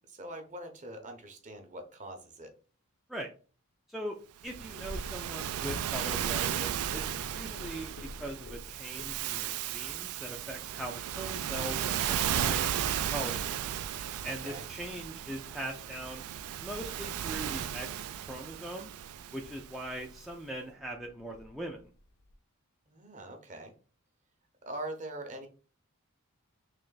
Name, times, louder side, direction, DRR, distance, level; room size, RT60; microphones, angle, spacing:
voice 1, 0.1-2.5 14.4-14.6 22.9-23.7 24.7-25.5, right 1 dB, 35° right, 4 dB, 0.8 m, -42 dB
Purr, 4.4-22.4, left 1 dB, 65° left, 0.6 m, -51 dB
voice 2, 4.4-7.9 8.2-13.5 14.2-16.2 16.6-17.9 18.2-18.9 19.3-21.9, right 1 dB, ahead, -1 dB, 0.4 m, -41 dB
Waves surf, 4.4-19.9, right 10 dB, 75° right, 0.3 m, -35 dB
3.4 x 3.0 x 3.9 m, 0.38 s
head